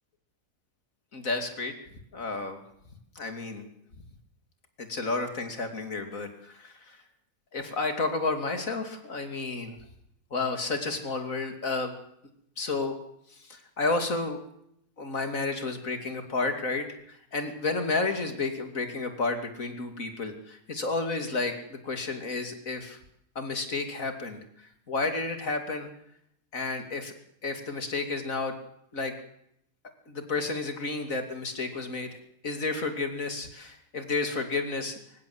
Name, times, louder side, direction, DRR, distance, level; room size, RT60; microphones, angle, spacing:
voice 1, 1.1-1.7 2.1-2.6 3.1-3.7 4.8-7.0 7.5-9.8 10.3-11.9 12.6-12.9 13.3-14.4 15.0-23.0 23.3-25.9 26.5-27.1 27.4-28.5 28.9-29.1 30.1-32.1 32.4-35.0, left 3 dB, 55° left, 6 dB, 3.3 m, -31 dB
26.0 x 15.5 x 8.0 m, 0.74 s
omnidirectional pair, 1.7 m